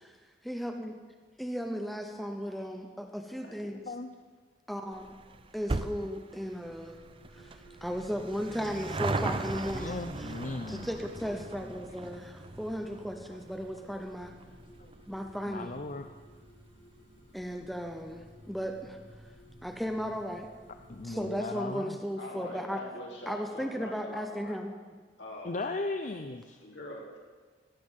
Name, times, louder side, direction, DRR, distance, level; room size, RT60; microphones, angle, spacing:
voice 1, 0.4-1.0 1.4-3.8 4.7-5.2 5.5-7.0 7.4-10.3 10.7-14.3 15.1-15.7 17.3-19.0 19.6-20.5 21.0-22.8 23.3-24.7, equal, ahead, 4 dB, 0.7 m, -36 dB
voice 2, 3.4-3.9 22.2-24.6 25.2-25.6 26.6-27.2, left 1 dB, 70° left, -2 dB, 3.5 m, -44 dB
sound 1, 4.8-21.4, equal, 85° left, 2.9 m, -55 dB
sound 2, 4.9-17.7 18.0-18.1 18.9-19.0 19.2-19.3 19.6-19.7, right 3 dB, 30° right, 0.5 m, -39 dB
voice 3, 9.7-10.8 14.8-14.9 15.5-16.1 20.9-22.0 25.4-26.6, left 3 dB, 40° left, 7 dB, 0.6 m, -37 dB
16.0 x 5.8 x 8.9 m, 1.5 s
head